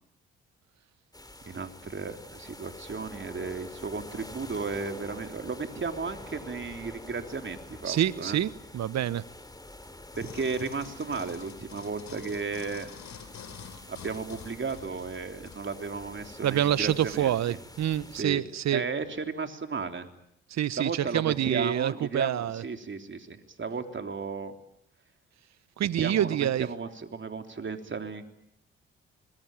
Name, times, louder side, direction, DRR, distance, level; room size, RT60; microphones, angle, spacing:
sound 1, 1.1-18.2, left 1 dB, 15° left, 3.5 m, -47 dB
voice 1, 1.4-8.4 10.2-12.9 13.9-17.6 18.1-18.4 18.7-20.1 20.8-24.5 25.8-28.3, right 4 dB, 40° right, 3.5 m, -34 dB
voice 2, 7.9-9.2 16.4-18.9 20.5-22.6 25.8-26.7, right 11 dB, 65° right, 1.1 m, -27 dB
sound 2, 10.1-15.6 16.2-16.3, left 8 dB, 65° left, 3.4 m, -47 dB
26.5 x 21.5 x 9.0 m
hypercardioid pair, 45°, 30 cm